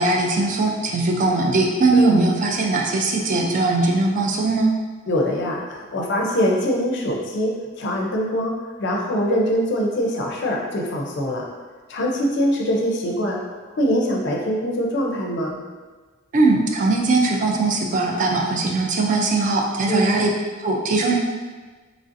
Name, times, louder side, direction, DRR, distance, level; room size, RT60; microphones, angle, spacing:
voice 1, 0.0-4.7 16.3-20.3 20.6-21.2, right 3 dB, 40° right, 0 dB, 0.3 m, -20 dB
voice 2, 1.9-2.3 5.1-11.5 11.9-13.4 13.7-15.6 19.9-20.2, equal, 60° left, 0 dB, 0.4 m, -23 dB
3.1 x 2.5 x 2.5 m, 1.4 s
head